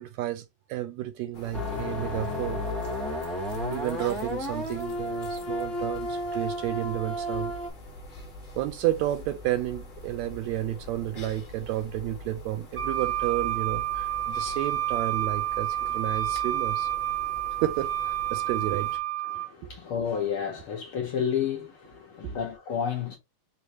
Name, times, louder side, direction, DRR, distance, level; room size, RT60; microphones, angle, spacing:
voice 1, 0.0-2.6 3.7-7.5 8.6-16.9 17.6-19.0 19.6-19.7, right 14 dB, 80° right, 1.7 m, -31 dB
sound 1, 1.3-19.0, left 1 dB, 30° left, 0.9 m, -44 dB
sound 2, 1.5-7.7, left 1 dB, ahead, 0.9 m, -32 dB
Wind instrument woodwind instrument, 12.8-19.5, right 12 dB, 60° right, 1.0 m, -29 dB
voice 2, 19.2-23.2, left 7 dB, 65° left, 1.4 m, -31 dB
5.0 x 3.1 x 2.9 m
omnidirectional pair, 3.4 m